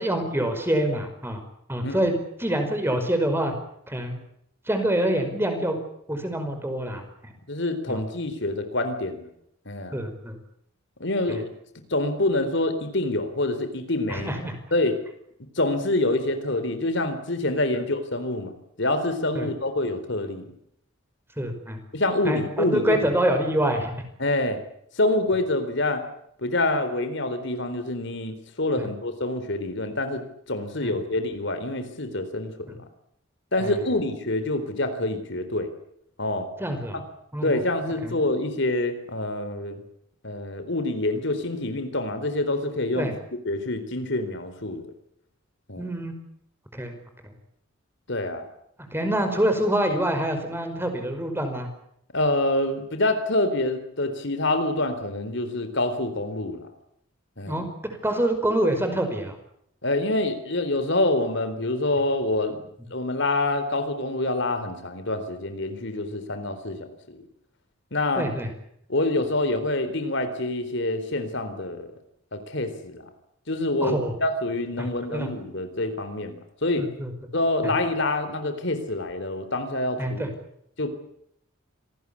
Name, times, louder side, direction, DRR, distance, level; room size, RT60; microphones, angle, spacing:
voice 1, 0.0-1.4 1.7-2.1 2.4-3.5 3.9-4.2 4.7-5.8 6.1-7.3 7.9-8.0 9.9-10.4 11.3-11.4 14.1-14.6 19.4-19.5 21.4-21.8 22.2-23.9 28.8-28.9 30.8-30.9 32.7-32.8 33.6-33.7 36.6-37.0 37.3-37.6 38.0-38.1 42.9-43.1 45.8-46.2 46.7-46.9 47.2-47.3 48.9-51.7 57.5-59.4 68.2-68.5 73.8-74.1 74.8-75.3 76.8-77.1 77.6-77.7 80.0-80.3, right 1 dB, 10° right, 6 dB, 5.3 m, -26 dB
voice 2, 7.5-9.3 9.7-10.0 11.0-11.5 11.9-14.3 14.7-15.0 15.6-20.5 21.9-23.1 24.2-24.6 25.0-26.0 26.4-32.8 33.5-35.7 36.2-36.5 36.9-37.0 37.4-39.8 40.2-43.1 43.5-44.9 45.7-45.9 48.1-48.5 52.1-56.7 57.4-57.6 59.8-67.3 67.9-68.3 68.9-71.9 72.3-73.1 73.5-76.9 77.3-80.3 80.8-80.9, left 2 dB, 60° left, 9 dB, 3.9 m, -26 dB
27.0 x 19.5 x 8.6 m, 0.72 s
head